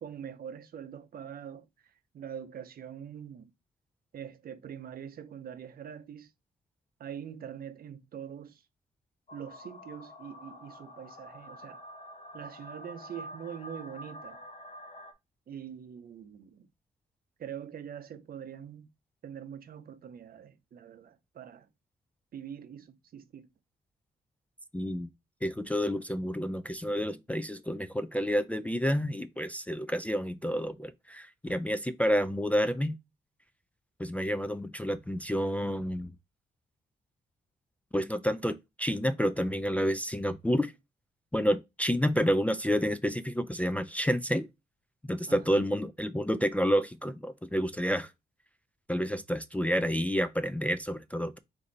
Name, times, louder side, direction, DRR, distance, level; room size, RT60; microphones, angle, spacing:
voice 1, 0.0-1.6 2.1-3.5 4.1-6.3 7.0-8.6 9.3-11.8 12.3-14.4 15.5-16.6 17.4-18.9 19.2-21.7 22.3-23.5 45.3-45.6, right 8 dB, 60° right, 0.6 m, -43 dB
sound 1, 9.3-15.1, equal, 40° left, 0.7 m, -47 dB
voice 2, 24.7-25.1 25.4-33.0 34.0-36.1 37.9-40.7 41.3-44.5 45.0-48.1 48.9-51.4, equal, 10° left, 0.3 m, -29 dB
4.2 x 2.7 x 3.8 m
cardioid pair, 85°, 17 cm